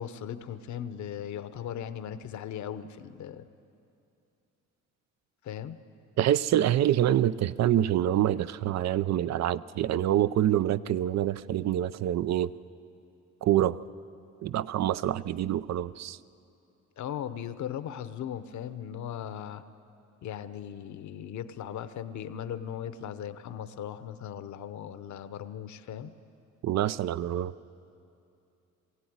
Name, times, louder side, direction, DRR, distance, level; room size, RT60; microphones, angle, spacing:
voice 1, 0.0-3.5 5.4-5.8 17.0-19.6 20.2-26.1, left 9 dB, 70° left, 12 dB, 0.9 m, -38 dB
voice 2, 6.2-12.5 13.4-13.8 14.4-16.2 26.6-27.5, right 12 dB, 60° right, 17 dB, 0.6 m, -26 dB
22.0 x 16.0 x 9.5 m, 2.6 s
cardioid pair, 90°, 30 cm